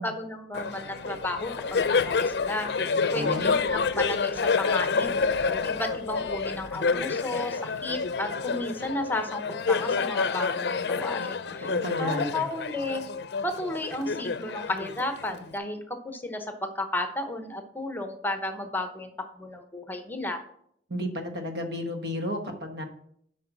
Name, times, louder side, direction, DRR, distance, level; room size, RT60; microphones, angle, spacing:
voice 1, 0.0-2.7 3.1-5.1 5.5-13.0 13.4-19.1 19.4-20.4, left 1 dB, 10° left, 6 dB, 0.8 m, -33 dB
Laughter, 0.5-15.5, left 5 dB, 65° left, 0.5 m, -28 dB
voice 2, 2.9-3.6 11.6-12.4 20.9-22.8, left 1 dB, 65° right, 5 dB, 1.4 m, -32 dB
8.0 x 5.2 x 6.0 m, 0.68 s
head